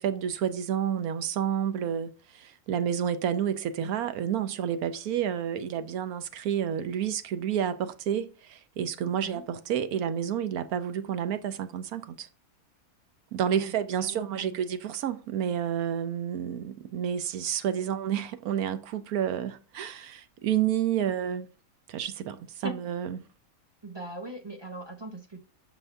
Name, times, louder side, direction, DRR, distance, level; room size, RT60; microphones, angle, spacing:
voice 1, 0.0-12.3 13.3-21.4 21.9-23.2, right 9 dB, 70° right, 1.1 m, -30 dB
voice 2, 14.0-14.6 17.8-18.0 22.6-22.8 23.8-25.4, right 2 dB, 20° right, 0.8 m, -40 dB
6.7 x 6.0 x 3.4 m
omnidirectional pair, 1.7 m